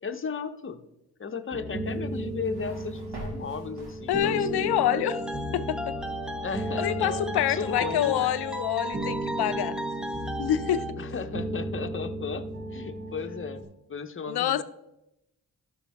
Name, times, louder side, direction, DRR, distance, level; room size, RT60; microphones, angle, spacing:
voice 1, 0.0-0.8 1.2-5.4 6.4-8.3 11.0-12.4 12.7-13.6 13.9-14.6, left 5 dB, 35° left, 0.9 m, -35 dB
sound 1, 1.5-13.6, right 1 dB, 25° right, 1.4 m, -35 dB
sound 2, 1.9-4.6, right 1 dB, 85° right, 2.4 m, -45 dB
voice 2, 4.1-5.2 5.5-5.9 6.8-9.8 10.4-10.9 14.3-14.6, left 11 dB, 85° left, 0.6 m, -26 dB
sound 3, 5.1-10.9, equal, ahead, 0.5 m, -36 dB
12.5 x 5.5 x 3.5 m
cardioid pair, 55°, 38 cm